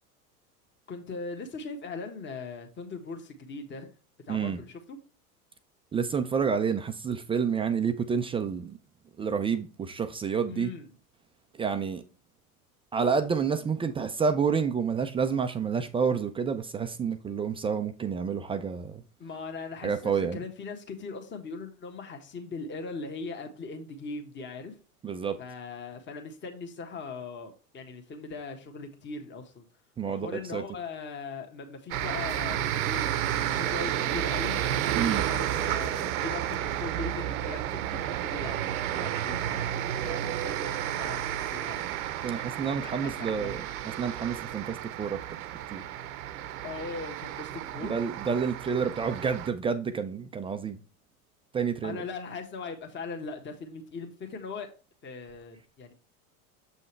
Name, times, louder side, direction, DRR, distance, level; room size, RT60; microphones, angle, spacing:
voice 1, 0.9-3.9 4.3-5.0 10.5-10.9 19.2-24.7 25.4-29.6 30.1-33.1 33.4-34.6 35.1-41.8 42.7-43.5 46.6-48.0 51.8-54.7 55.0-55.9, left 4 dB, 25° left, 1.4 m, -40 dB
voice 2, 4.3-4.6 5.9-8.8 9.2-10.7 11.5-12.0 12.9-19.0 19.8-20.4 25.0-25.4 30.0-30.6 35.0-35.3 42.2-45.2 45.7-45.8 47.8-50.8 51.5-52.0, right 6 dB, 15° right, 0.3 m, -29 dB
sound 1, 31.9-49.5, right 11 dB, 70° right, 0.8 m, -31 dB
7.1 x 5.4 x 3.2 m
hypercardioid pair, 105°, 44 cm